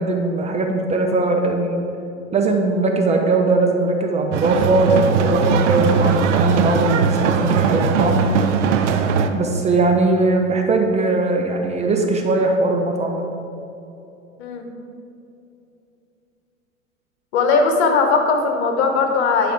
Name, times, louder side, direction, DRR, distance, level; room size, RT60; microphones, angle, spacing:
voice 1, 0.0-1.8 2.3-8.2 9.3-13.3, right 2 dB, 15° right, 2 dB, 0.7 m, -20 dB
sound 1, 4.3-9.3, right 6 dB, 60° right, 0.8 m, -19 dB
voice 2, 17.3-19.5, left 4 dB, 55° left, 4 dB, 1.4 m, -19 dB
11.0 x 4.9 x 4.9 m, 2.8 s
figure-of-eight pair, 90°, 40 cm